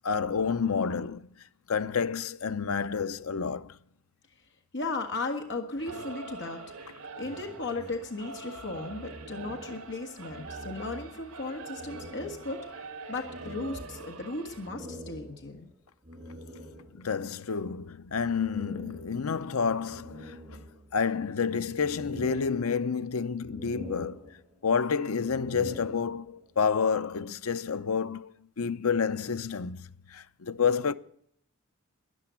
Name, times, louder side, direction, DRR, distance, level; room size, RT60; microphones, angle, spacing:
voice 1, 0.0-1.2 1.7-3.8 16.9-20.4 20.9-24.3 24.6-29.8 30.1-30.9, left 6 dB, 80° left, 0.7 m, -29 dB
voice 2, 4.7-6.9 7.2-12.7 13.1-15.7, left 3 dB, 55° left, 1.5 m, -36 dB
Singing / Musical instrument, 5.8-14.7, right 3 dB, 85° right, 1.7 m, -44 dB
sound 1, 7.2-10.0 10.2-11.4 11.8-17.2 18.2-19.5 19.9-21.2 21.6-23.1 23.4-24.7 25.2-26.5, equal, 30° right, 5.3 m, -46 dB
13.0 x 11.0 x 9.2 m
head